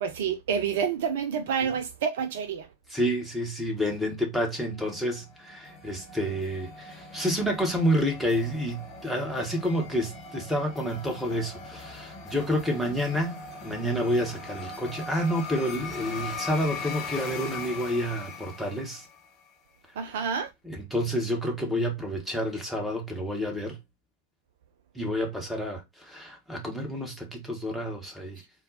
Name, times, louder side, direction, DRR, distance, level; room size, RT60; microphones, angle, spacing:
voice 1, 0.0-2.7 20.0-20.5, right 7 dB, 55° right, 0.5 m, -28 dB
voice 2, 2.9-19.0 20.6-23.8 24.9-28.4, equal, ahead, 1.2 m, -29 dB
sound 1, 4.8-19.4, left 4 dB, 30° left, 1.0 m, -40 dB
4.0 x 2.3 x 4.0 m
figure-of-eight pair, 90°, 0 cm